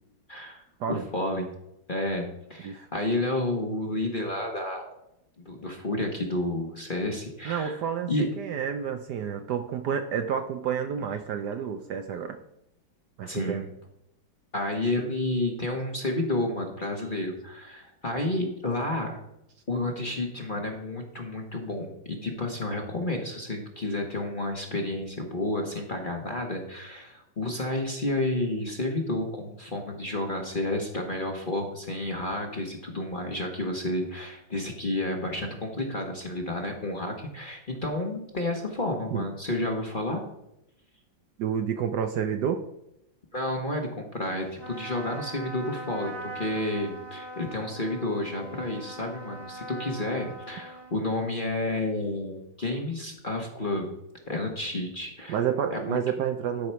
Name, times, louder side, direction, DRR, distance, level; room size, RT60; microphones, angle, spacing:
voice 1, 0.3-0.6 0.9-1.5 1.9-5.0 5.4-7.8 8.1-8.2 13.2-13.6 14.5-19.2 19.7-40.2 43.3-53.9 54.3-55.4 55.7-56.0, left 1 dB, 30° left, 2 dB, 1.1 m, -31 dB
voice 2, 7.4-12.4 13.2-13.7 39.1-39.2 41.4-42.6 55.3-56.7, right 8 dB, 70° right, 7 dB, 1.1 m, -29 dB
Trumpet, 44.5-51.4, right 1 dB, 30° right, 1.5 m, -41 dB
12.0 x 4.8 x 5.7 m, 0.82 s
omnidirectional pair, 2.2 m